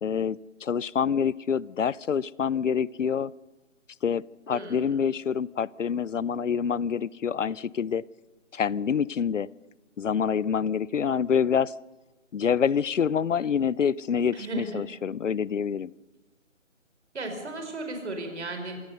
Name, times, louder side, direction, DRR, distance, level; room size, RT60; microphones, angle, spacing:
voice 1, 0.0-3.3 4.0-8.0 8.5-9.5 10.0-11.7 12.3-15.9, left 7 dB, 70° left, 24 dB, 0.7 m, -26 dB
voice 2, 4.5-5.1 14.3-14.8 17.1-18.8, right 2 dB, 60° right, 5 dB, 4.8 m, -35 dB
26.5 x 18.0 x 6.7 m, 1.2 s
figure-of-eight pair, 160°, 39 cm